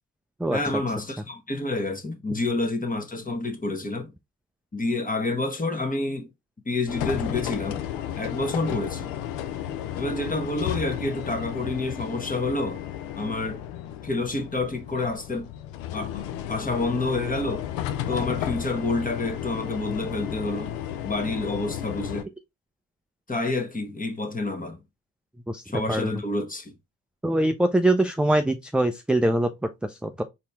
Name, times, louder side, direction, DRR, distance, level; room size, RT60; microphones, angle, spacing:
voice 1, 0.5-4.1 4.7-6.3 6.6-7.8 8.1-9.1 10.0-12.8 13.2-13.6 14.0-15.5 15.9-17.7 18.1-20.7 21.0-22.3 23.3-24.8 25.6-26.7, left 2 dB, 20° left, 1.2 m, -28 dB
sound 1, 6.9-22.2, left 11 dB, 85° left, 0.6 m, -33 dB
voice 2, 25.5-26.2 27.2-29.5 29.8-30.2, right 1 dB, 5° right, 0.3 m, -23 dB
4.1 x 2.9 x 3.3 m
supercardioid pair, 50°, 42 cm